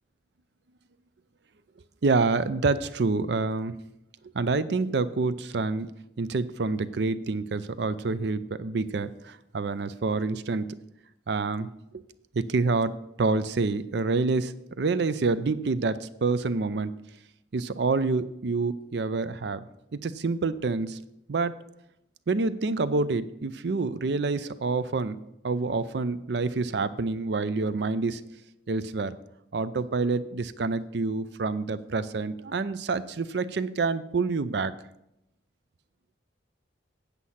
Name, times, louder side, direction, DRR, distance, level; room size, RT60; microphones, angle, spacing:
voice 1, 2.0-3.8 4.3-5.9 6.2-10.7 11.3-12.0 12.3-12.9 13.2-16.9 17.5-19.7 20.0-21.0 21.3-21.5 22.3-25.2 25.4-28.2 28.7-29.2 29.5-34.7, right 3 dB, 65° right, 15 dB, 0.5 m, -27 dB
8.4 x 8.1 x 5.7 m, 0.84 s
head